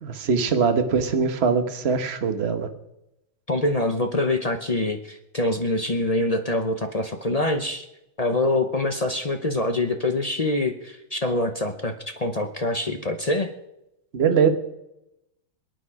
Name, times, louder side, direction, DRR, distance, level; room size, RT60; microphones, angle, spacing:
voice 1, 0.0-2.7 14.1-14.5, right 5 dB, 35° right, 7 dB, 1.3 m, -22 dB
voice 2, 3.5-7.9 8.2-13.5, left 2 dB, 55° left, 6 dB, 0.4 m, -25 dB
27.0 x 9.2 x 4.9 m, 0.88 s
omnidirectional pair, 2.2 m